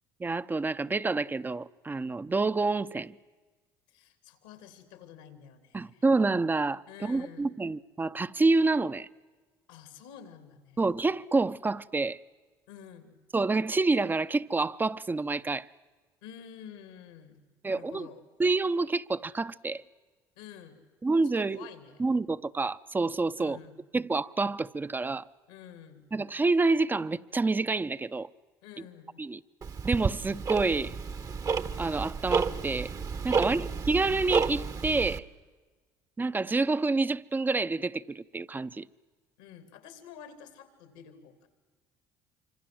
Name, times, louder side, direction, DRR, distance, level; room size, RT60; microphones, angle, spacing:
voice 1, 0.2-3.2 5.7-9.1 10.8-12.2 13.3-15.7 17.6-18.1 18.4-19.8 21.0-21.7 22.0-23.6 23.9-25.3 26.1-28.3 29.2-29.4 29.8-30.9 31.8-32.9 33.2-35.2 36.2-38.9, right 3 dB, 20° right, 0.7 m, -28 dB
voice 2, 3.9-6.0 6.9-7.5 9.7-10.9 12.7-13.2 16.2-18.2 20.4-20.8 21.2-22.0 23.4-23.8 25.5-26.1 28.6-29.2 33.3-33.7 39.4-41.5, left 8 dB, 90° left, 3.0 m, -49 dB
Tick-tock, 29.6-35.2, right 5 dB, 40° right, 1.2 m, -31 dB
26.5 x 25.0 x 7.8 m
supercardioid pair, 70°, 9 cm